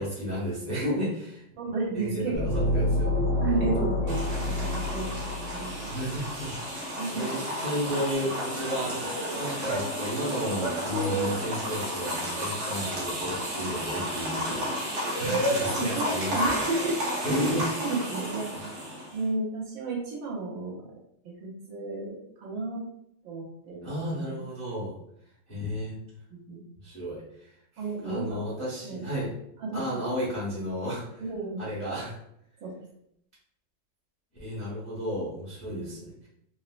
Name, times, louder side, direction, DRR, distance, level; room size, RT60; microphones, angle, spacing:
voice 1, 0.0-1.4 1.9-3.2 5.9-6.5 7.1-9.1 9.4-16.6 17.2-17.6 23.8-25.0 25.5-26.0 26.8-27.5 28.0-29.3 29.7-31.2 31.6-32.1 34.3-36.3, equal, 15° left, -8 dB, 0.6 m, -32 dB
voice 2, 1.6-2.6 3.4-5.9 7.0-7.4 15.2-15.4 15.8-17.2 17.5-18.5 19.1-20.8 21.3-22.9 23.2-24.4 26.3-26.6 27.8-28.4 28.8-29.1 29.6-30.0 31.2-31.7 32.6-32.7 35.7-36.0, right 3 dB, 80° right, -3 dB, 1.7 m, -33 dB
sound 1, 2.3-6.1, left 2 dB, 70° left, 0.7 m, -28 dB
sound 2, 4.1-19.2, equal, 65° right, 1.3 m, -32 dB
4.2 x 2.0 x 2.4 m, 0.73 s
omnidirectional pair, 2.1 m